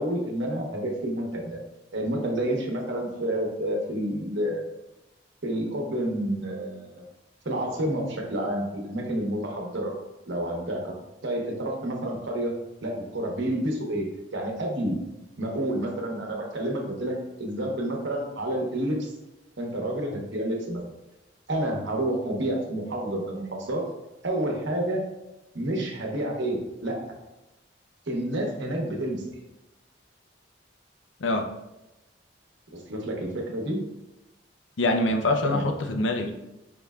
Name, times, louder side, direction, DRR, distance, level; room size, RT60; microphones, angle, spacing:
voice 1, 0.0-1.6 1.9-4.6 5.4-7.0 7.4-9.9 10.3-10.9 11.2-12.5 12.8-14.1 14.3-15.0 15.4-19.1 19.6-20.8 21.5-23.8 24.2-25.0 25.5-27.0 28.1-29.4 32.7-33.8 35.4-35.6, right 1 dB, 70° right, 0 dB, 0.9 m, -29 dB
voice 2, 34.8-36.3, left 2 dB, 85° left, 4 dB, 0.5 m, -24 dB
5.2 x 3.2 x 2.3 m, 0.96 s
head